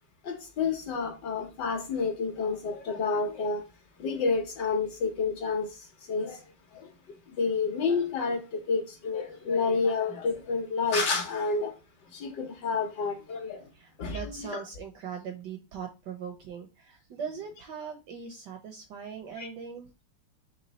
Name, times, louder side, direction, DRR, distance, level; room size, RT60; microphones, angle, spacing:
voice 1, 0.2-3.6 4.0-5.7 6.1-6.4 6.7-6.8 7.4-11.7 12.1-13.6 14.0-14.6 19.4-19.5, left 4 dB, 65° left, 1.3 m, -29 dB
voice 2, 13.7-19.9, right 6 dB, 75° right, 1.0 m, -40 dB
4.0 x 3.0 x 3.9 m
omnidirectional pair, 2.3 m